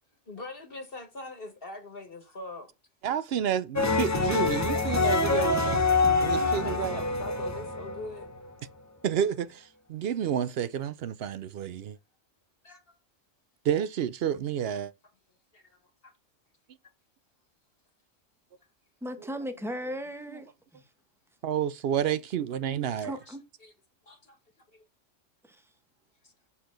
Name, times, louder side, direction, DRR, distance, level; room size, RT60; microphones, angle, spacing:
voice 1, 0.3-2.7 6.5-8.3 12.6-12.8 15.5-16.1 23.3-23.7 24.0-24.4 24.7-24.8 26.2-26.3, left 2 dB, 45° left, 1.8 m, -42 dB
voice 2, 3.0-7.0 9.0-12.0 13.6-14.9 21.4-23.2, right 9 dB, 60° right, 0.7 m, -30 dB
sound 1, 3.8-8.5, left 3 dB, 15° left, 0.6 m, -26 dB
voice 3, 19.0-20.8 23.0-23.4 25.5-25.6, equal, ahead, 1.0 m, -37 dB
6.7 x 4.3 x 3.8 m
omnidirectional pair, 1.3 m